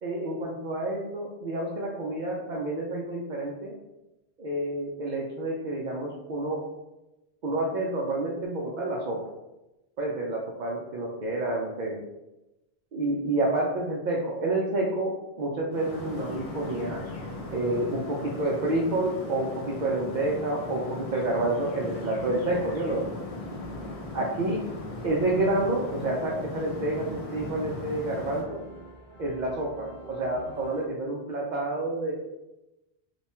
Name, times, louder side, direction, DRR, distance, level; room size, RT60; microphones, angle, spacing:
voice 1, 0.0-3.7 4.4-6.6 7.4-9.2 10.0-12.0 12.9-17.0 17.5-23.1 24.1-24.6 25.0-28.6 29.2-32.1, right 2 dB, 55° right, -3 dB, 0.6 m, -29 dB
sound 1, 15.7-28.4, left 2 dB, 40° left, 0.5 m, -38 dB
sound 2, 15.9-30.9, right 3 dB, 10° left, 0.8 m, -49 dB
3.1 x 2.2 x 4.2 m, 0.99 s
omnidirectional pair, 1.1 m